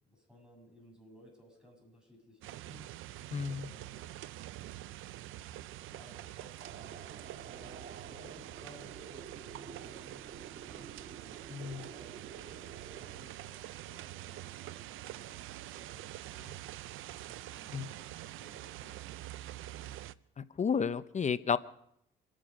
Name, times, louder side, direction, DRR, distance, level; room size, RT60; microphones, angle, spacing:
voice 1, 0.0-2.9 3.5-4.1 5.8-10.9 11.2-12.7 13.1-15.4 15.7-16.7 17.0-20.0, equal, 5° right, 0 dB, 7.7 m, -59 dB
sound 1, 2.4-20.1, right 15 dB, 85° right, 0.5 m, -46 dB
voice 2, 3.3-3.7 11.5-11.8 17.7-17.9 20.4-21.6, left 6 dB, 35° left, 14 dB, 0.7 m, -32 dB
sound 2, 6.6-13.2, right 6 dB, 50° right, 1.6 m, -50 dB
27.0 x 10.5 x 5.2 m, 0.72 s
cardioid pair, 90°, 20 cm